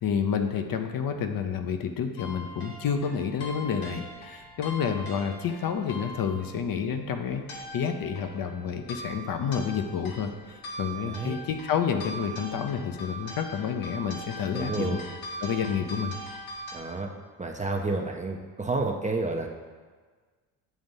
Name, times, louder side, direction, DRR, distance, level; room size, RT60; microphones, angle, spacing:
voice 1, 0.0-15.0 15.4-16.1, left 7 dB, 45° left, 6 dB, 0.6 m, -29 dB
sound 1, 2.2-16.8, equal, 75° left, 1.2 m, -41 dB
voice 2, 11.0-11.4 14.5-15.1 16.7-17.1 17.4-19.5, right 3 dB, 15° right, 1 dB, 0.5 m, -30 dB
7.1 x 2.6 x 5.4 m, 1.5 s
hypercardioid pair, 55°, 48 cm